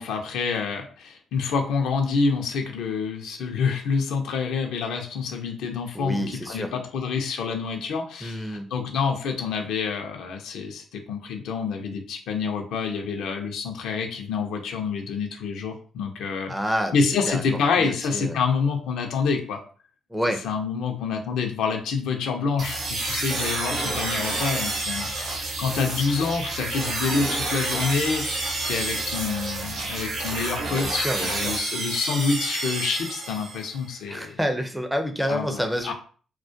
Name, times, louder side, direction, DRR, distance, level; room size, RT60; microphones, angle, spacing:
voice 1, 0.0-16.6 16.9-19.6 20.4-34.4 35.3-35.9, left 5 dB, 80° left, 3 dB, 0.5 m, -27 dB
voice 2, 5.9-6.7 8.2-8.7 16.5-17.0 17.3-17.4 17.8-18.4 20.1-20.4 30.7-31.5 34.1-35.9, equal, 5° right, 6 dB, 0.4 m, -28 dB
sound 1, 22.6-33.8, right 2 dB, 75° right, 0.7 m, -29 dB
2.2 x 2.1 x 2.6 m, 0.42 s
cardioid pair, 90°, 0 cm